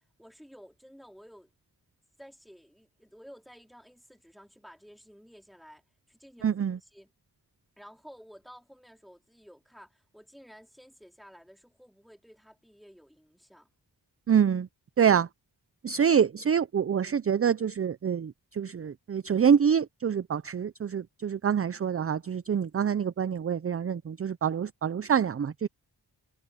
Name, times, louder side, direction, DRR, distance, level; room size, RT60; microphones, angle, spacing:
voice 1, 0.0-1.5 2.2-5.8 6.1-7.1 7.8-13.7, equal, ahead, 4.2 m, -53 dB
voice 2, 6.4-6.8 14.3-14.7 15.0-15.3 15.8-25.7, right 7 dB, 35° right, 0.4 m, -26 dB
wide cardioid pair, 70°, 43 cm